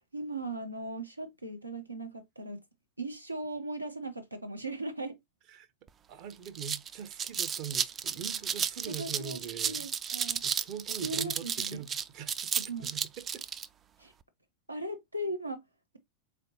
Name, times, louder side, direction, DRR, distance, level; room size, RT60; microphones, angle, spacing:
voice 1, 0.1-2.6 3.0-5.2 9.0-9.4 9.7-10.4 11.0-11.8 12.7-12.9 14.0-14.1 14.7-15.6, right 2 dB, 85° right, 0.8 m, -38 dB
sound 1, 5.9-6.0 6.3-13.7, right 7 dB, 25° right, 0.3 m, -33 dB
voice 2, 6.1-9.9 10.4-13.5, right 8 dB, 40° right, 0.7 m, -43 dB
4.0 x 3.3 x 2.7 m
figure-of-eight pair, 90°, 0 cm